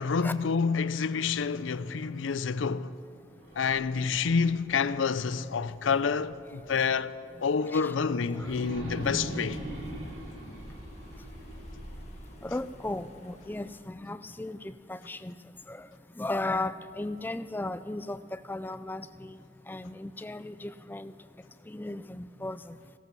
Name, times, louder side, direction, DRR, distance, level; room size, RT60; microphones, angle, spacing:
voice 1, 0.0-2.9 3.6-7.1 7.4-9.6, left 5 dB, 85° left, 0.5 m, -28 dB
sound 1, 3.3-6.3 6.7-6.8 8.2-13.3, right 1 dB, 85° right, 4.1 m, -41 dB
Thunder, 9.2-13.8, left 1 dB, 35° left, 1.6 m, -53 dB
voice 2, 12.4-14.6 14.9-15.3 15.7-15.9 16.2-19.4 19.7-21.1 21.7-22.8, left 2 dB, 10° left, 0.4 m, -36 dB
16.5 x 13.5 x 6.1 m
head